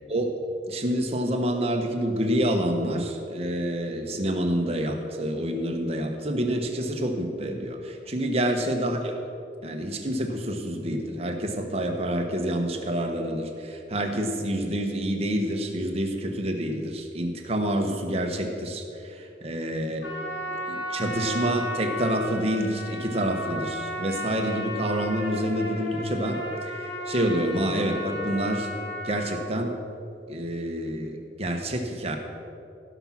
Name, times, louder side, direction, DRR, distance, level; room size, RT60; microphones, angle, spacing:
voice 1, 0.7-9.2 9.6-20.0 20.7-26.4 26.7-28.7 29.0-29.8 30.3-32.2, right 1 dB, 35° right, 3 dB, 1.2 m, -28 dB
Trumpet, 20.0-29.5, left 1 dB, 85° left, 1.6 m, -34 dB
16.0 x 6.1 x 5.9 m, 2.6 s
head